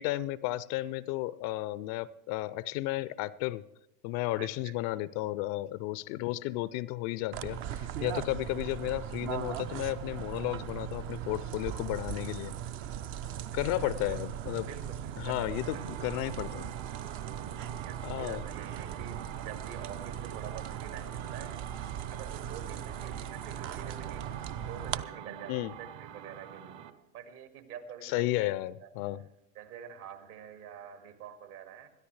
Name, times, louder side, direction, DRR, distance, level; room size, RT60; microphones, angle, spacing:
voice 1, 0.0-3.6 4.0-12.6 13.5-14.7 15.2-16.7 18.0-18.4 25.5-25.7 28.0-29.2, left 16 dB, 45° left, 19 dB, 0.4 m, -33 dB
voice 2, 4.4-4.7 13.7-14.2 14.6-15.8 17.8-21.6 22.1-24.3 24.7-26.8 27.1-28.5 28.8-28.9 29.6-31.9, right 8 dB, 70° right, 7 dB, 2.1 m, -47 dB
sound 1, 7.3-25.0, right 10 dB, 30° right, 0.4 m, -39 dB
sound 2, 15.5-27.0, right 9 dB, 45° right, 0.9 m, -46 dB
21.0 x 13.0 x 3.2 m, 0.88 s
hypercardioid pair, 90°, 46 cm